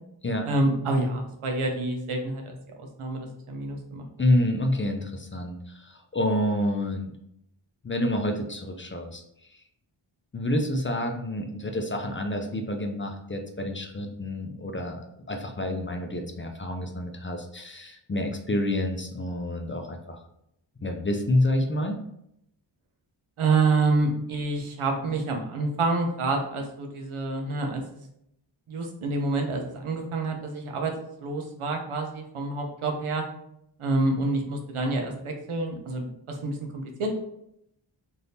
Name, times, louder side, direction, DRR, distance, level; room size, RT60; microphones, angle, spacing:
voice 1, 0.4-4.1 23.4-27.8 28.7-30.9 31.2-33.2 33.8-37.2, right 3 dB, 85° right, 3 dB, 0.7 m, -27 dB
voice 2, 4.2-7.1 7.8-9.2 10.3-15.0 15.3-20.2 20.8-22.0, left 1 dB, 25° left, 3 dB, 0.4 m, -28 dB
3.4 x 2.6 x 2.7 m, 0.77 s
wide cardioid pair, 60°, 48 cm